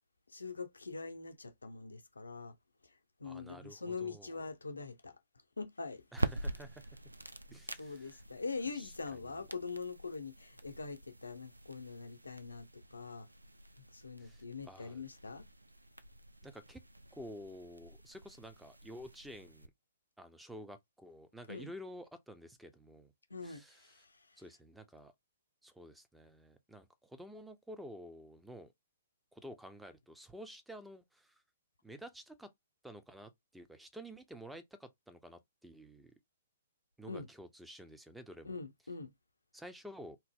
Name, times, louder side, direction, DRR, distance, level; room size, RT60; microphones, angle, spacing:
voice 1, 0.3-2.5 3.2-5.1 5.6-6.0 7.5-13.3 13.9-15.4 21.5-21.7 23.3-23.9 37.1-37.3 38.4-39.1, left 4 dB, 80° left, 0.6 m, -43 dB
voice 2, 3.2-4.5 6.1-7.0 7.5-8.2 8.7-9.5 14.2-15.0 16.4-16.8 17.1-19.7 20.2-23.1 23.4-24.1 24.4-25.1 25.6-28.7 29.3-31.4 31.8-32.5 32.8-36.1 37.0-38.6 39.5-40.2, equal, 5° right, 0.5 m, -51 dB
sound 1, 6.1-19.7, right 1 dB, 90° right, 0.3 m, -45 dB
2.8 x 2.0 x 3.6 m
figure-of-eight pair, 120°, 0 cm